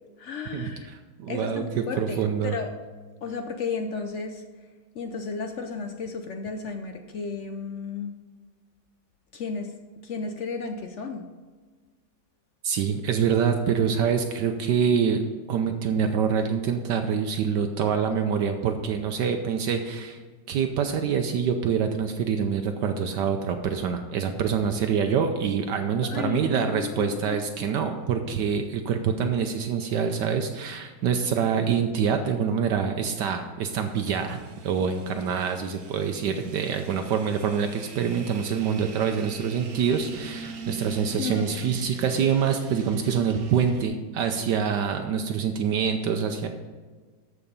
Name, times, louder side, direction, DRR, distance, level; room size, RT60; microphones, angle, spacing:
voice 1, 0.2-0.9 1.3-2.7 3.2-4.4 4.9-8.1 9.3-9.7 10.0-11.3 26.0-27.8 35.1-35.2 41.2-41.8, left 5 dB, 70° left, 6 dB, 0.7 m, -33 dB
voice 2, 1.2-1.6 2.0-2.6 12.6-15.2 15.5-20.2 20.5-46.5, right 7 dB, 75° right, 6 dB, 1.3 m, -25 dB
sound 1, 33.7-43.9, right 4 dB, 55° right, 1.1 m, -43 dB
14.0 x 4.8 x 5.5 m, 1.4 s
omnidirectional pair, 1.9 m